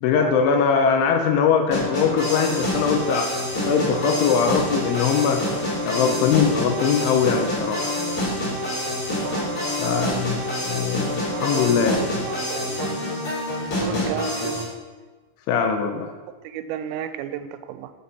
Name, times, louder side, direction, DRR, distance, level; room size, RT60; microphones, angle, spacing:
voice 1, 0.0-3.3 3.7-5.4 5.8-7.9 9.8-12.1 13.9-14.0 15.5-16.1, left 6 dB, 80° left, 4 dB, 3.1 m, -21 dB
sound 1, 1.7-14.6, left 1 dB, 30° left, 4.2 m, -27 dB
voice 2, 9.2-9.6 11.3-13.1 13.6-14.6 16.3-17.9, right 10 dB, 90° right, 10 dB, 3.3 m, -34 dB
13.0 x 7.9 x 4.2 m, 1.3 s
omnidirectional pair, 5.9 m